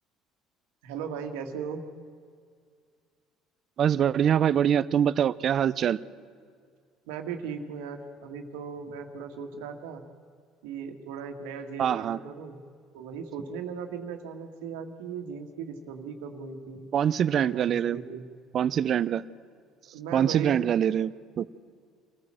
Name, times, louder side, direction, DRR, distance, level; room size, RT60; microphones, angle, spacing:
voice 1, 0.8-1.8 7.1-10.0 10.6-12.6 12.9-16.9 17.3-18.2 19.9-20.6, right 6 dB, 85° right, 5 dB, 2.0 m, -37 dB
voice 2, 3.8-6.0 11.8-12.2 16.9-18.0 18.5-19.2 20.1-21.5, right 9 dB, 50° right, 17 dB, 0.6 m, -24 dB
25.5 x 15.5 x 7.7 m, 2.1 s
supercardioid pair, 90°, 0 cm